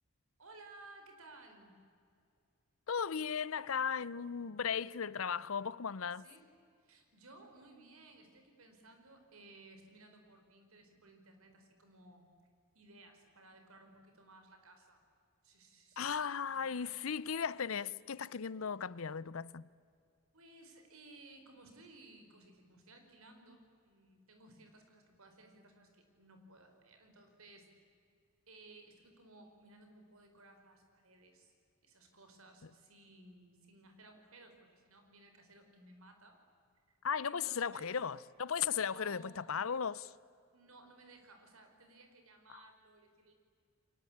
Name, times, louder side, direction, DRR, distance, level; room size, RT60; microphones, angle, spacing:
voice 1, 0.4-1.8 6.1-6.5 6.8-12.3 12.7-15.0 15.4-16.2 16.4-17.0 20.3-27.7 28.5-31.5 31.8-36.4 37.2-38.0 38.6-39.5 40.5-43.3, right 2 dB, 75° right, 4.9 m, -59 dB
voice 2, 2.9-6.3 16.0-19.6 37.0-40.1 42.5-42.6, left 7 dB, 70° left, 0.7 m, -36 dB
30.0 x 23.5 x 8.6 m
head